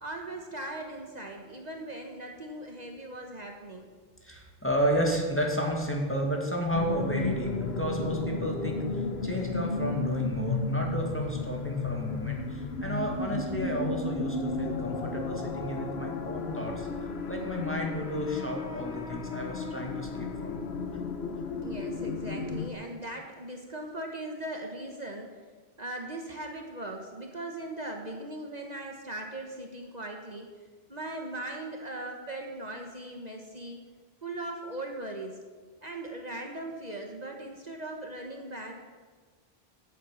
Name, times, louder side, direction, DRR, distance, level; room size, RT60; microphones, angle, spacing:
voice 1, 0.0-3.9 21.6-25.4 25.8-30.5 30.9-33.8 34.2-35.4 35.8-38.8, right 1 dB, 45° right, 2 dB, 1.4 m, -39 dB
voice 2, 4.2-16.9 17.3-20.6, equal, 10° left, 0 dB, 2.2 m, -32 dB
sound 1, 6.7-22.7, left 3 dB, 85° left, 1.3 m, -33 dB
11.0 x 8.5 x 8.9 m, 1.4 s
omnidirectional pair, 1.0 m